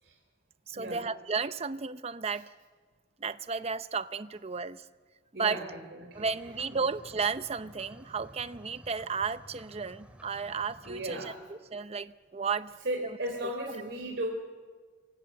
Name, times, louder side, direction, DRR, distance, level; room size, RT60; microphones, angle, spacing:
voice 1, 0.7-2.5 3.2-4.9 5.4-5.6 6.1-12.7, right 5 dB, 35° right, 14 dB, 0.7 m, -33 dB
voice 2, 5.3-6.3 6.7-6.8 10.8-11.4 12.8-14.3, right 1 dB, 70° right, 1 dB, 3.4 m, -36 dB
sound 1, 6.1-11.1, equal, 5° right, 3.2 m, -53 dB
25.5 x 24.0 x 7.6 m, 1.5 s
head